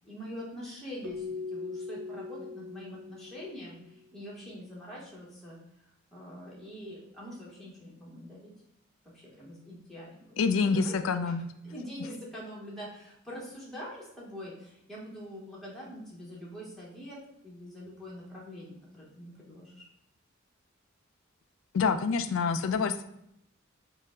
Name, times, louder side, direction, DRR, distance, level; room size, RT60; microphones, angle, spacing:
voice 1, 0.0-5.6 6.1-8.5 9.1-10.9 11.2-17.2 17.4-19.9, equal, ahead, -6 dB, 0.9 m, -44 dB
Keyboard (musical), 1.0-3.9, left 4 dB, 85° right, 0.8 m, -40 dB
voice 2, 10.4-11.5 21.7-23.0, left 5 dB, 70° left, 10 dB, 0.3 m, -27 dB
4.3 x 2.0 x 3.5 m, 0.79 s
head